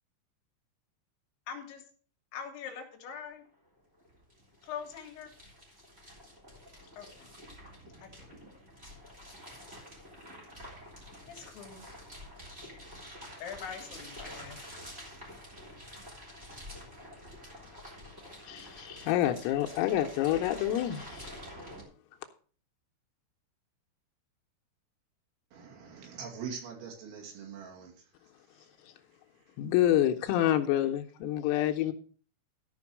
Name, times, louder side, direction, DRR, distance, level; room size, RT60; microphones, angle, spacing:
voice 1, 1.5-1.8 2.3-3.4 4.7-5.3 7.0-7.3 8.0-8.1 11.3-12.0 13.4-14.6, left 7 dB, 70° left, 3.8 m, -43 dB
sound 1, 3.1-3.2 3.4-21.8, equal, 15° right, 2.9 m, -48 dB
voice 2, 18.4-21.3 29.6-31.9, left 12 dB, 85° left, 3.5 m, -28 dB
voice 3, 25.5-28.1 28.5-28.7 29.4-29.6, right 6 dB, 65° right, 4.7 m, -43 dB
14.0 x 5.3 x 6.1 m
omnidirectional pair, 5.9 m